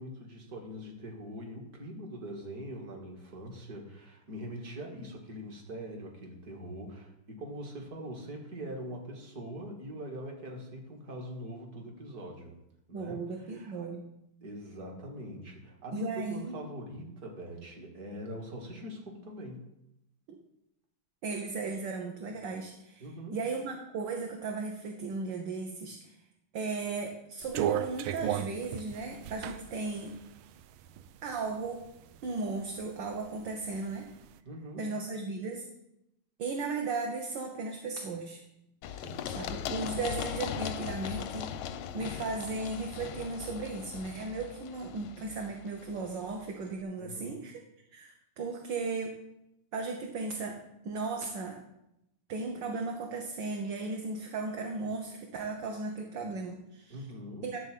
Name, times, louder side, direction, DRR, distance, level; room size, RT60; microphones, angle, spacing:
voice 1, 0.0-12.6 12.9-13.8 14.4-19.6 23.0-23.4 34.5-34.9 38.9-39.3 47.0-47.4 56.9-57.5, equal, 45° right, 1 dB, 2.2 m, -43 dB
voice 2, 12.9-14.0 15.9-16.6 21.2-23.1 23.3-26.1 26.5-30.2 31.2-31.9 32.2-34.1 34.8-35.7 36.4-38.4 39.3-41.5 41.9-47.6 47.9-49.1 49.7-51.6 52.3-57.0 57.4-57.6, right 3 dB, 65° right, 2 dB, 1.6 m, -36 dB
sound 1, 27.4-31.4 31.8-32.8 33.2-34.2, right 10 dB, 80° right, 1.4 m, -34 dB
Run, 38.8-46.5, left 9 dB, 90° left, 1.5 m, -39 dB
11.5 x 4.1 x 7.5 m, 0.85 s
omnidirectional pair, 2.3 m